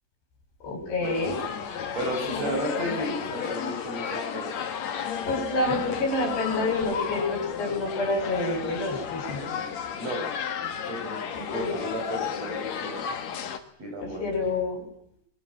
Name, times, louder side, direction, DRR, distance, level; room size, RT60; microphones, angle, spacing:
voice 1, 0.6-1.4 2.3-2.9 5.2-9.4 11.3-11.7 14.0-14.8, left 2 dB, 80° left, 4 dB, 8.4 m, -28 dB
sound 1, 1.0-13.6, left 7 dB, 50° left, 2.5 m, -33 dB
voice 2, 1.9-4.6 9.4-9.7 10.0-10.2 10.8-13.0 13.8-14.2, right 1 dB, 40° right, 2 dB, 7.6 m, -34 dB
28.0 x 22.5 x 7.5 m, 0.70 s
omnidirectional pair, 4.7 m